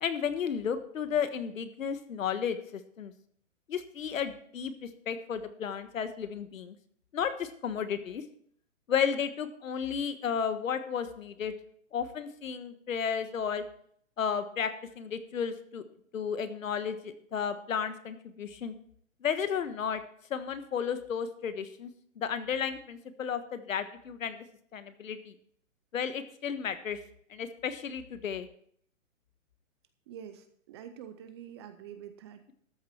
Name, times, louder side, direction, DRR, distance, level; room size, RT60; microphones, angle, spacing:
voice 1, 0.0-3.1 3.7-6.7 7.1-8.2 8.9-11.5 11.9-13.6 14.2-15.8 16.1-18.7 19.2-20.0 20.3-21.9 22.2-24.4 24.7-25.3 25.9-27.0 27.3-28.5, left 7 dB, 70° left, 10 dB, 1.4 m, -33 dB
voice 2, 30.1-32.5, right 9 dB, 20° right, 9 dB, 0.5 m, -46 dB
13.0 x 8.8 x 4.4 m, 0.64 s
hypercardioid pair, 145°, 41 cm